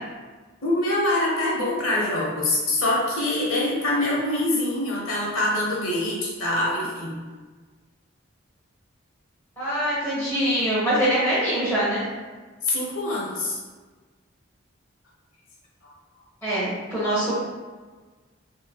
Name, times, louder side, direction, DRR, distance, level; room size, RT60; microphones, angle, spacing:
voice 1, 0.6-7.2 12.6-13.6 15.8-15.9, left 1 dB, 85° left, -4 dB, 1.0 m, -24 dB
voice 2, 9.6-12.0 16.4-17.3, right 1 dB, 10° left, -13 dB, 1.2 m, -23 dB
4.4 x 2.2 x 2.2 m, 1.3 s
head